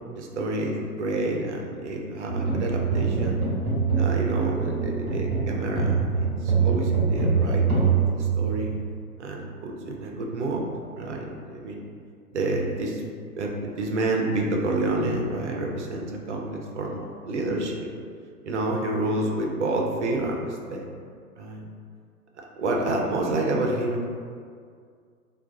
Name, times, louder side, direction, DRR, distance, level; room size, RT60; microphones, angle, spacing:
voice 1, 0.2-3.5 3.9-8.8 9.2-10.7 11.0-11.8 12.3-13.0 13.4-17.9 18.4-20.9 21.4-21.7 22.6-24.1, right 2 dB, 50° right, 0 dB, 0.5 m, -29 dB
sound 1, 2.3-8.9, right 5 dB, 25° right, 0.9 m, -24 dB
2.4 x 2.2 x 3.7 m, 2.1 s
figure-of-eight pair, 110°, 45 cm